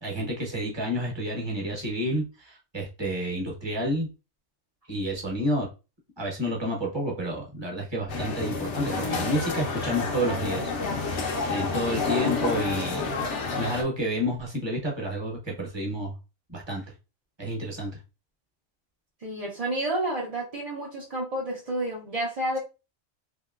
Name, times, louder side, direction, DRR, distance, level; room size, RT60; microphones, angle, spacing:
voice 1, 0.0-4.1 4.9-5.7 6.2-10.7 11.5-13.1 13.6-16.1 16.5-16.8 17.4-17.9, equal, 25° right, -1 dB, 0.9 m, -30 dB
sound 1, 8.1-13.8, left 4 dB, 65° left, 0.9 m, -29 dB
voice 2, 19.2-22.6, right 1 dB, 40° right, -3 dB, 0.5 m, -30 dB
3.0 x 2.8 x 2.4 m, 0.30 s
omnidirectional pair, 1.4 m